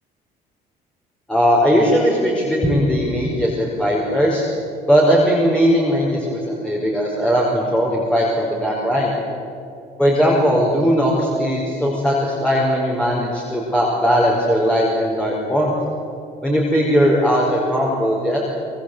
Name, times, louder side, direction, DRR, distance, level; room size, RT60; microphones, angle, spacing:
voice 1, 1.3-4.4 4.9-9.1 10.0-15.7 16.4-18.4, equal, 5° left, -4 dB, 5.2 m, -18 dB
24.0 x 23.0 x 8.1 m, 2.6 s
cardioid pair, 110°, 17 cm